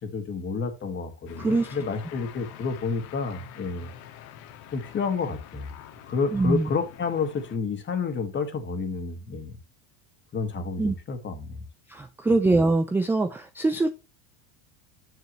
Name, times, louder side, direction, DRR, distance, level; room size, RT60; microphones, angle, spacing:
voice 1, 0.0-3.9 4.7-5.7 6.1-9.5 10.3-11.6, left 5 dB, 25° left, 2.0 m, -30 dB
sound 1, 1.3-7.6, left 10 dB, 65° left, 1.9 m, -46 dB
voice 2, 1.4-1.8 6.3-6.7 10.8-10.9 11.9-13.9, right 2 dB, 5° right, 0.3 m, -23 dB
9.4 x 7.2 x 3.1 m
cardioid pair, 155°, 44 cm